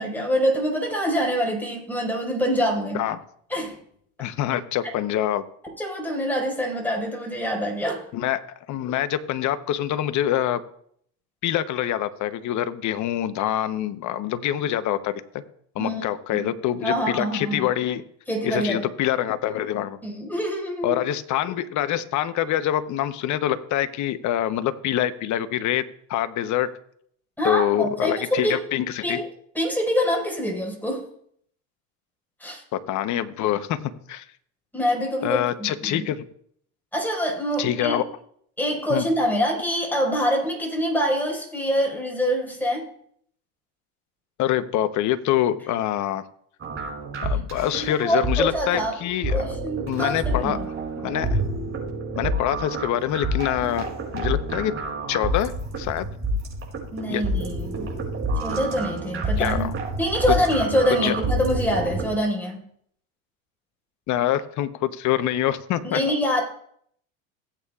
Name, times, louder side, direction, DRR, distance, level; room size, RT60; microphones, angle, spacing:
voice 1, 0.0-3.1 3.5-3.8 5.8-8.0 15.8-16.0 16.3-16.5 16.8-17.7 18.3-18.9 20.0-21.0 27.4-28.6 29.0-29.3 29.6-31.1 32.4-32.6 34.7-36.1 36.9-38.0 38.6-42.9 47.9-49.0 49.3-50.6 56.9-57.9 58.4-59.7 60.0-62.6 65.8-66.4, equal, 5° left, -1 dB, 5.0 m, -25 dB
voice 2, 4.2-5.4 8.1-8.4 8.7-10.6 11.4-15.2 15.7-18.0 18.4-20.0 20.8-25.8 26.1-26.7 27.4-29.2 32.7-33.8 34.1-34.2 35.2-36.3 37.6-38.1 38.9-39.1 44.4-46.2 47.2-49.6 49.9-50.6 51.0-51.4 52.1-53.9 54.1-54.7 55.1-56.1 57.1-57.2 59.4-59.7 60.9-61.2 64.1-66.0, left 12 dB, 50° left, 12 dB, 1.0 m, -25 dB
sound 1, 46.6-62.1, right 1 dB, 35° right, 4.9 m, -28 dB
17.0 x 8.5 x 2.4 m, 0.66 s
hypercardioid pair, 85°, 37 cm